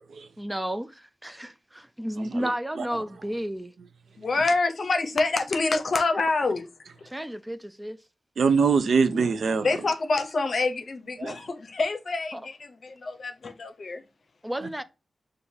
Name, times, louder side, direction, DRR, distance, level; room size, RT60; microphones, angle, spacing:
voice 1, 0.4-3.7 7.1-8.0 12.3-12.4 14.4-14.8, equal, 10° right, 0.3 m, -32 dB
voice 2, 2.2-2.5 2.8-2.9 8.4-9.7 11.2-11.3 14.6-14.7, right 5 dB, 80° right, 0.5 m, -23 dB
voice 3, 4.2-6.7 9.6-14.0, left 3 dB, 55° left, 0.7 m, -26 dB
6.3 x 2.5 x 2.7 m
wide cardioid pair, 105°, 0 cm